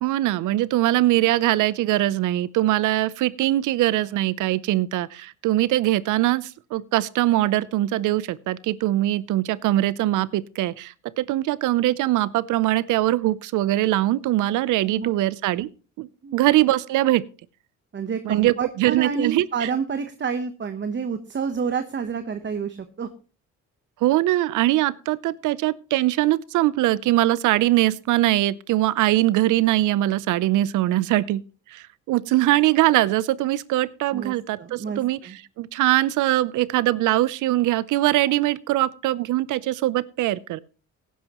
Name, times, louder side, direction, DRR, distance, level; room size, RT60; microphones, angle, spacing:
voice 1, 0.0-15.7 16.0-17.2 18.2-19.7 24.0-31.4 31.7-40.6, right 15 dB, 85° right, 20 dB, 0.6 m, -22 dB
voice 2, 14.9-15.2 16.2-16.4 17.9-23.1 34.1-35.4, right 6 dB, 40° right, 9 dB, 1.0 m, -29 dB
17.5 x 10.5 x 3.0 m, 0.36 s
cardioid pair, 90°, 30 cm